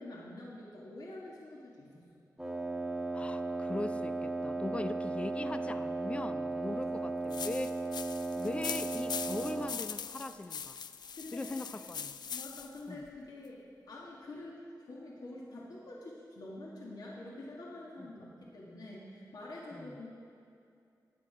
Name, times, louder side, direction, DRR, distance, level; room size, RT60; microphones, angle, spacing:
voice 1, 0.0-2.1 4.5-4.8 6.6-6.9 11.2-11.8 12.3-13.6 13.9-14.6 14.9-20.1, left 2 dB, 70° left, -4 dB, 1.8 m, -47 dB
Wind instrument woodwind instrument, 2.4-9.8, right 2 dB, 5° right, 1.2 m, -36 dB
voice 2, 3.1-7.8 8.4-10.8 11.3-12.2 12.9-13.1 19.7-20.0, left 2 dB, 15° left, 11 dB, 0.4 m, -40 dB
sound 1, 7.3-12.8, left 7 dB, 85° left, 0.4 m, -41 dB
16.0 x 10.0 x 4.9 m, 2.5 s
wide cardioid pair, 170°, 7 cm